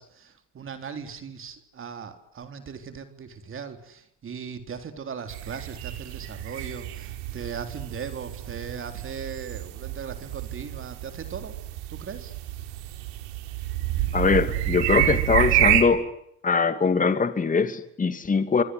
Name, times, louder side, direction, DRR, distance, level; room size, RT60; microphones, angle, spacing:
voice 1, 0.0-11.6 11.9-12.3, right 6 dB, 40° right, 8 dB, 3.8 m, -38 dB
sound 1, 5.3-15.8, right 13 dB, 90° right, 3.7 m, -28 dB
voice 2, 14.1-16.1 16.4-18.6, left 5 dB, 25° left, 10 dB, 2.8 m, -22 dB
27.0 x 25.0 x 8.0 m, 0.76 s
supercardioid pair, 90°, 33 cm